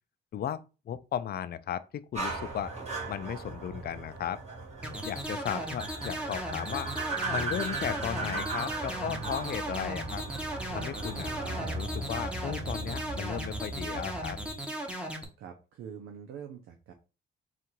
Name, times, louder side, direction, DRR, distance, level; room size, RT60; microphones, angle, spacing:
voice 1, 0.9-2.7 3.1-4.4 5.0-6.9 7.2-10.2 10.7-11.3 11.6-14.4, left 9 dB, 50° left, 0.4 m, -35 dB
sound 1, 2.2-14.5, right 2 dB, 35° right, 2.0 m, -37 dB
sound 2, 4.8-15.2, right 1 dB, 5° right, 1.0 m, -37 dB
voice 2, 9.0-9.4 15.4-16.9, right 7 dB, 85° right, 0.6 m, -44 dB
3.7 x 2.5 x 4.4 m
cardioid pair, 90°, 20 cm